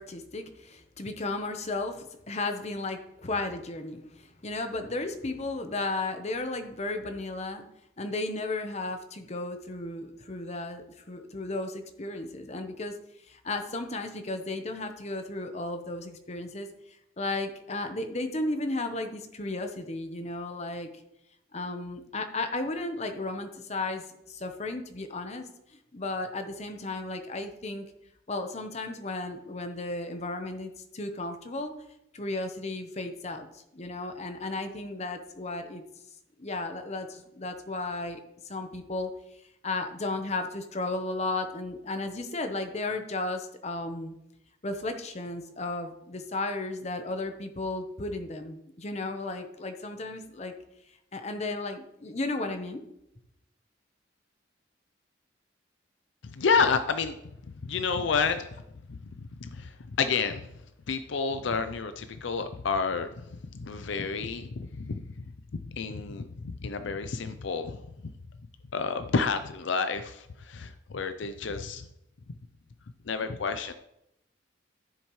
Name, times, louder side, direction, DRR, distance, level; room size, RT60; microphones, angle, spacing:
voice 1, 0.0-7.7 8.0-10.8 11.1-12.9 13.3-16.7 17.2-20.9 21.5-25.5 25.9-27.9 28.3-31.7 32.1-35.8 36.4-39.1 39.6-44.1 44.6-50.5 51.1-52.8, left 2 dB, 35° left, 6 dB, 0.9 m, -34 dB
voice 2, 56.3-57.2 57.6-58.6 58.9-60.5 60.9-65.3 65.7-68.1 68.7-71.9 73.1-73.7, left 5 dB, 70° left, 9 dB, 0.5 m, -30 dB
13.5 x 7.1 x 3.1 m, 0.83 s
head